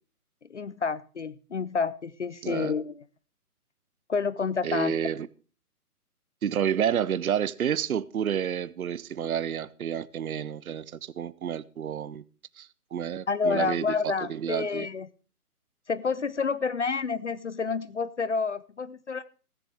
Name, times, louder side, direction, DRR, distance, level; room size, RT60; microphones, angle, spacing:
voice 1, 0.5-3.0 4.1-5.0 13.3-15.1 15.9-19.3, left 5 dB, 50° left, 0.5 m, -29 dB
voice 2, 2.4-2.7 4.6-5.3 6.4-12.2 12.6-14.9, right 9 dB, 65° right, 0.7 m, -30 dB
14.5 x 13.5 x 3.4 m
figure-of-eight pair, 155°, 46 cm